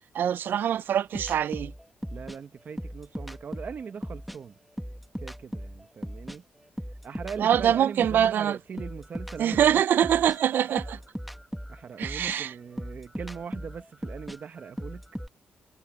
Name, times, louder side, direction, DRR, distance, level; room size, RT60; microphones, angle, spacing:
voice 1, 0.1-1.7 7.4-8.6 9.4-11.0 12.0-12.5, right 9 dB, 70° right, 0.4 m, -24 dB
sound 1, 1.1-4.4 4.7-8.3 8.8-15.3, equal, ahead, 1.7 m, -38 dB
voice 2, 2.1-4.6 5.2-6.4 7.0-10.0 11.7-15.0, right 6 dB, 55° right, 1.1 m, -40 dB
cardioid pair, 80°, 4 cm